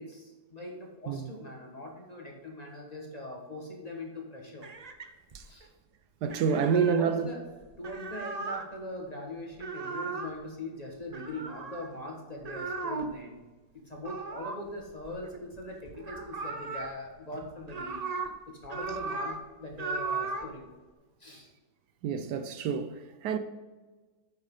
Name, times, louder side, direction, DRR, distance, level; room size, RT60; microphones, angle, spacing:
voice 1, 0.0-4.7 5.4-5.7 6.5-7.4 7.8-13.4 13.8-18.0 18.5-20.7 21.2-21.5, left 1 dB, 25° left, 1.6 m, -41 dB
sound 1, 4.6-5.6 6.3-7.0 7.6-8.7 9.5-10.4 11.1-11.9 12.4-13.2 14.0-15.6 15.9-16.9 17.4-18.3 18.6-19.4 19.7-20.5, right 4 dB, 45° right, 0.5 m, -36 dB
voice 2, 6.2-7.3 22.0-23.4, right 6 dB, 75° right, 1.2 m, -28 dB
9.0 x 7.3 x 3.8 m
omnidirectional pair, 1.8 m